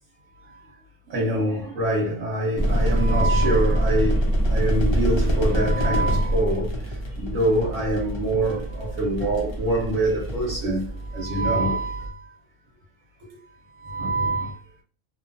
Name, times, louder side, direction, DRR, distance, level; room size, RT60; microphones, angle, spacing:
voice 1, 1.1-12.3 13.8-14.6, right 1 dB, 85° right, 1.1 m, -25 dB
sound 1, 2.6-12.1, equal, 45° left, 0.3 m, -25 dB
2.8 x 2.2 x 2.4 m
omnidirectional pair, 1.3 m